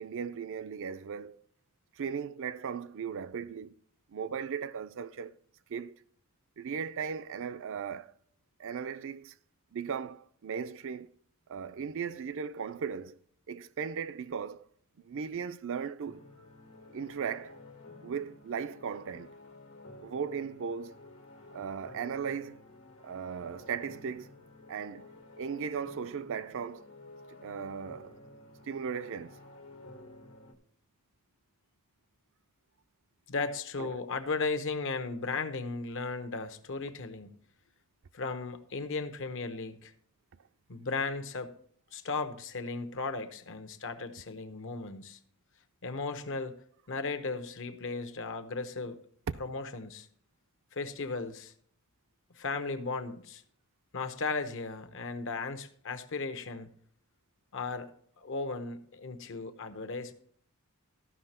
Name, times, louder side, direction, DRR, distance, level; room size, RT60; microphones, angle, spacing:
voice 1, 0.0-1.4 2.0-3.7 4.1-5.3 5.7-5.9 6.6-8.1 8.6-9.3 9.7-11.1 11.5-13.2 13.5-14.7 15.0-16.2 16.9-17.6 18.0-19.3 20.0-21.0 21.5-22.6 23.0-24.3 24.7-25.1 25.4-26.9 27.4-28.2 28.7-29.4 33.8-34.0, right 6 dB, 60° right, 0.4 m, -37 dB
sound 1, 16.0-30.5, left 2 dB, 80° left, 1.6 m, -52 dB
voice 2, 33.3-37.4 38.1-39.9 40.7-41.5 41.9-45.2 45.8-46.6 46.9-49.0 49.4-50.1 50.7-51.5 52.3-53.4 53.9-56.7 57.5-57.9 58.2-60.1, left 4 dB, 60° left, 0.9 m, -36 dB
14.0 x 5.8 x 4.3 m
head